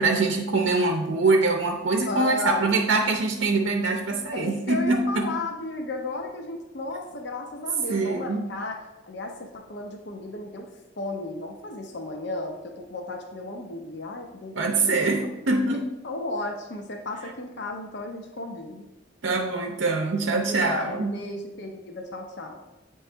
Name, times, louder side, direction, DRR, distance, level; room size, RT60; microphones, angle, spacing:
voice 1, 0.0-5.3 7.9-8.4 14.6-15.9 19.2-21.2, right 3 dB, 65° right, 2 dB, 0.6 m, -24 dB
voice 2, 2.0-2.7 4.3-10.7 11.0-15.1 16.0-18.9 20.3-22.6, left 2 dB, 60° left, 2 dB, 0.7 m, -34 dB
8.6 x 3.1 x 4.4 m, 0.98 s
head